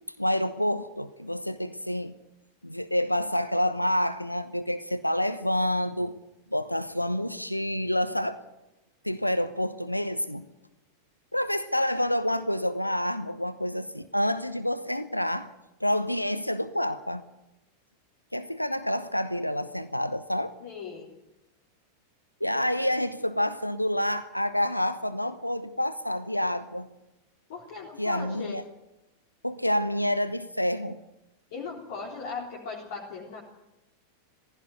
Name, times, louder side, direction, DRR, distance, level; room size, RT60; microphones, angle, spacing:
voice 1, 0.2-2.1 2.6-6.1 6.5-8.4 9.0-10.5 11.3-15.5 15.8-17.2 18.3-20.5 22.4-26.9 28.0-28.6 29.4-31.0, left 1 dB, 90° left, 12 dB, 0.9 m, -28 dB
voice 2, 20.6-21.2 27.5-28.6 31.5-33.4, left 4 dB, 55° left, -1 dB, 3.5 m, -38 dB
18.5 x 15.5 x 9.3 m, 0.96 s
figure-of-eight pair, 90°, 0 cm